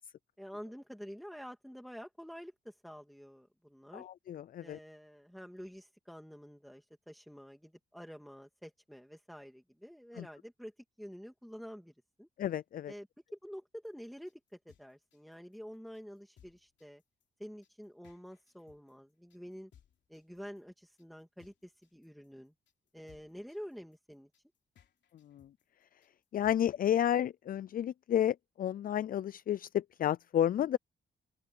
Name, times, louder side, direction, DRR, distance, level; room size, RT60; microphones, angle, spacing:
voice 1, 0.4-4.1 4.6-11.9 12.2-12.3 12.9-17.0 17.4-19.7 20.1-22.5 22.9-24.3, equal, ahead, 2.6 m, -48 dB
voice 2, 3.9-4.8 10.2-10.3 12.4-12.9 25.2-25.5 26.3-30.8, left 10 dB, 50° left, 0.4 m, -31 dB
sound 1, 13.8-27.3, left 9 dB, 75° left, 3.3 m, -66 dB
cardioid pair, 100°, 19 cm